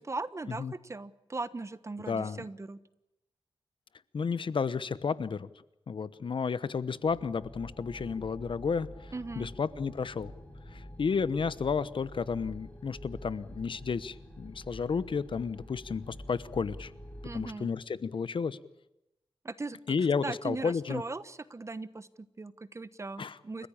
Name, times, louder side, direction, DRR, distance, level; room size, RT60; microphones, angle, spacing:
voice 1, 0.0-2.8 9.1-9.5 17.2-17.7 19.4-19.8 20.2-23.7, right 3 dB, 30° right, 15 dB, 1.2 m, -39 dB
voice 2, 2.1-2.4 4.1-5.5 5.9-10.3 10.7-16.9 17.2-18.6 19.9-21.0 23.2-23.7, left 5 dB, 60° left, 17 dB, 1.0 m, -32 dB
sound 1, 7.0-17.5, equal, 15° left, 5.5 m, -47 dB
29.5 x 15.5 x 8.8 m, 0.89 s
wide cardioid pair, 105°, 10 cm